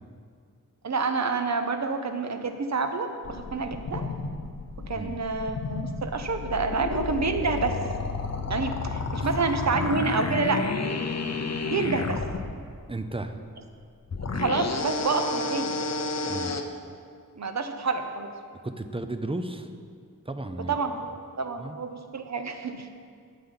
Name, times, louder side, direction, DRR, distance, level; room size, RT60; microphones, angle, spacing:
voice 1, 0.8-4.1 4.8-7.8 8.5-10.7 11.7-12.2 14.3-15.8 17.4-18.3 20.7-22.9, right 4 dB, 55° right, 7 dB, 0.9 m, -28 dB
sound 1, 3.2-12.5 14.1-16.6, left 3 dB, 50° left, 0.8 m, -31 dB
voice 2, 4.9-5.2 9.2-9.3 12.9-13.4 16.3-16.6 18.6-19.7 20.2-20.8 21.2-21.3 21.6-21.8, right 2 dB, 15° right, 8 dB, 0.6 m, -34 dB
11.5 x 8.6 x 5.7 m, 2.2 s
wide cardioid pair, 125°, 33 cm